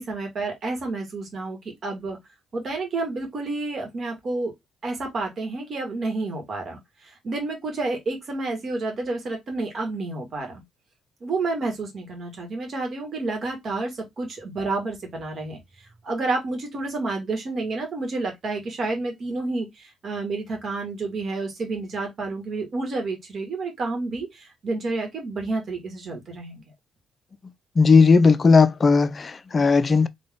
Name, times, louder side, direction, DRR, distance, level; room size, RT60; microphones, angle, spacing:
voice 1, 0.0-2.2 2.5-4.5 4.8-10.6 11.2-15.6 16.0-26.6, right 3 dB, 50° right, 2.2 m, -30 dB
voice 2, 27.8-30.1, left 4 dB, 35° left, 0.5 m, -16 dB
4.0 x 3.4 x 3.7 m
cardioid pair, 90°, 0 cm